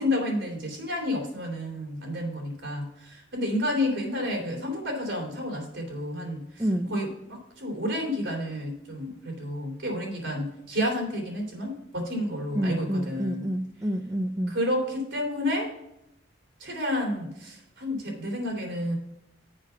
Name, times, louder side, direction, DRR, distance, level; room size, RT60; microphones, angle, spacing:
voice 1, 0.0-13.4 14.5-15.7 16.6-18.9, left 1 dB, 85° right, 0 dB, 3.5 m, -30 dB
voice 2, 12.6-14.5, equal, 15° right, 6 dB, 0.5 m, -28 dB
7.6 x 5.9 x 5.9 m, 0.80 s
head